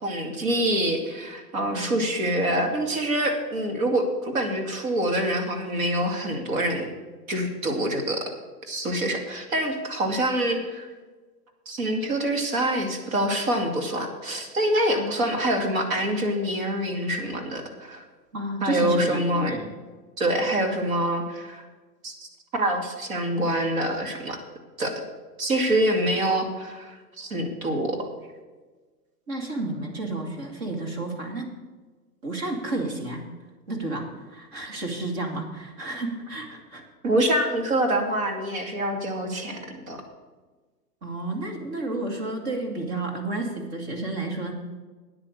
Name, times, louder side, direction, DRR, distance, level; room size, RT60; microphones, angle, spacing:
voice 1, 0.0-6.9 7.3-8.3 8.7-10.9 11.7-18.0 18.6-19.6 20.2-21.6 22.0-24.4 24.8-24.9 25.4-28.0 37.0-40.0, right 1 dB, 55° right, 3 dB, 2.6 m, -26 dB
voice 2, 18.3-19.7 29.3-31.5 32.2-33.2 33.7-36.8 41.0-44.5, right 2 dB, 40° right, 2 dB, 2.4 m, -31 dB
9.6 x 8.9 x 6.7 m, 1.3 s
hypercardioid pair, 165°, 49 cm